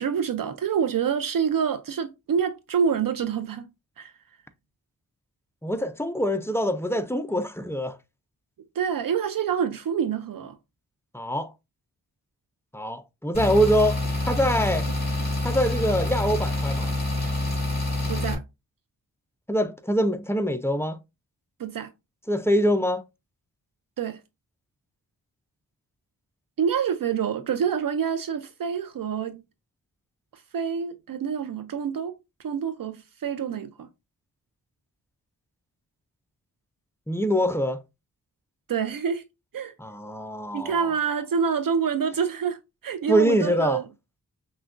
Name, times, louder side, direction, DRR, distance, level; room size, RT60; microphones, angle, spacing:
voice 1, 0.0-3.7 4.0-4.1 8.8-10.5 18.1-18.4 21.6-21.9 24.0-24.2 26.6-29.4 30.3-32.1 32.4-33.9 38.7-39.2 39.5-39.7 40.5-42.6 42.8-43.8, right 7 dB, 60° right, 0.5 m, -27 dB
voice 2, 5.6-8.0 11.1-11.5 12.7-14.9 15.4-16.9 19.5-21.0 22.3-23.0 37.1-37.8 39.8-40.8 43.1-43.8, equal, 5° left, 0.3 m, -24 dB
sound 1, 13.3-18.3, left 2 dB, 25° left, 2.5 m, -27 dB
5.8 x 2.2 x 2.5 m
wide cardioid pair, 90°, 38 cm